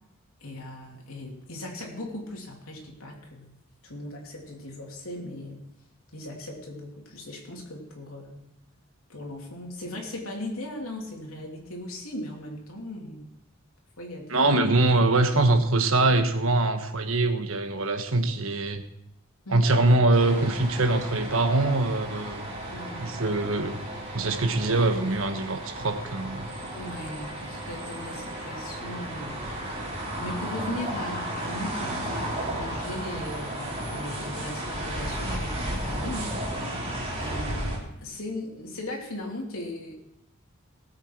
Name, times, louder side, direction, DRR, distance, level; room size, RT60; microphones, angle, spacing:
voice 1, 0.4-3.6 3.8-5.7 6.1-8.4 9.1-13.3 14.0-14.5 19.4-19.7 22.7-23.4 26.7-29.9 30.2-36.4 37.2-39.9, left 1 dB, 85° left, 0 dB, 3.2 m, -38 dB
voice 2, 14.3-18.8 19.5-22.5 23.0-23.8 24.1-26.5, right 2 dB, 75° right, 7 dB, 1.3 m, -23 dB
sound 1, 20.1-37.8, right 1 dB, 30° right, 3.3 m, -34 dB
18.5 x 8.1 x 4.7 m, 0.81 s
head